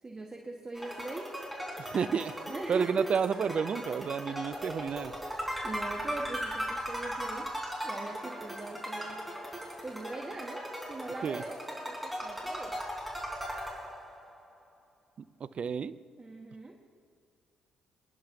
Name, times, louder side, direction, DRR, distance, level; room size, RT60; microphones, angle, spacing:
voice 1, 0.0-1.3 2.5-3.1 5.6-7.5 7.8-9.2 9.8-12.7 15.6-15.7 16.2-16.8, right 2 dB, 30° right, 2 dB, 1.3 m, -41 dB
sound 1, 0.7-14.4, equal, ahead, 3.8 m, -38 dB
voice 2, 1.8-2.3 2.7-5.1 11.2-11.4 15.4-16.0, right 6 dB, 45° right, 15 dB, 0.4 m, -31 dB
25.5 x 10.0 x 2.7 m, 2.2 s
hypercardioid pair, 45°, 3 cm